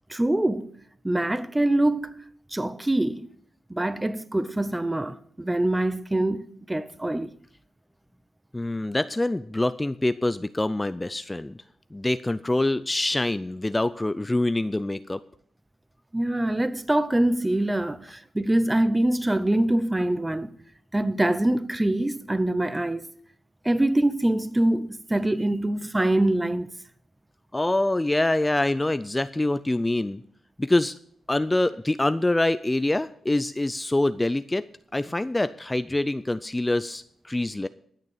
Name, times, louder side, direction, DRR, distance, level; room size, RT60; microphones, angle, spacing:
voice 1, 0.1-0.7 1.0-2.1 2.5-3.3 3.7-7.3 16.1-20.5 20.9-23.0 23.6-26.7, right 1 dB, 15° right, 0.7 m, -24 dB
voice 2, 8.5-11.6 11.9-15.2 27.5-30.2 30.6-30.9 31.3-34.6 34.9-37.7, left 2 dB, 15° left, 0.4 m, -25 dB
12.0 x 6.6 x 7.3 m
cardioid pair, 60°, 0 cm